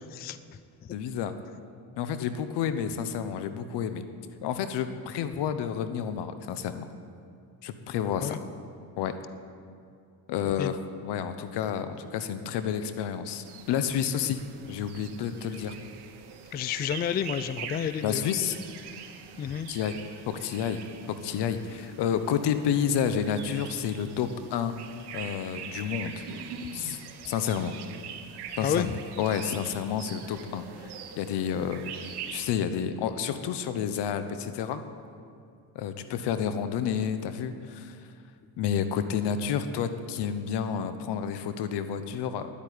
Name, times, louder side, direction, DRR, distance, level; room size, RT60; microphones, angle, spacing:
voice 1, 0.9-1.3 2.0-4.0 4.4-6.9 7.6-8.4 9.0-9.2 10.3-14.4 14.7-15.7 18.0-18.6 19.7-19.9 20.3-24.7 25.1-26.2 26.7-27.0 27.2-27.8 28.6-31.8 32.3-34.8 35.7-38.0 38.6-42.5, left 8 dB, 70° left, 10 dB, 1.1 m, -30 dB
sound 1, 13.4-32.5, right 7 dB, 65° right, 1.3 m, -43 dB
voice 2, 16.5-18.3 19.4-19.7 28.6-28.9, left 9 dB, 25° left, 14 dB, 0.3 m, -30 dB
10.5 x 8.6 x 9.5 m, 2.4 s
cardioid pair, 105°, 43 cm